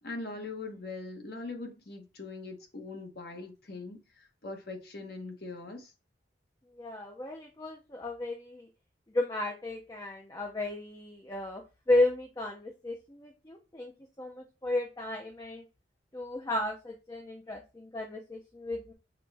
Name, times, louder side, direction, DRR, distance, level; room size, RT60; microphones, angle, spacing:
voice 1, 0.0-5.9, left 3 dB, 55° left, 0.9 m, -41 dB
voice 2, 6.8-8.7 9.1-13.9 14.2-15.6 16.1-18.9, left 2 dB, 20° left, 0.5 m, -33 dB
6.0 x 2.2 x 3.3 m
head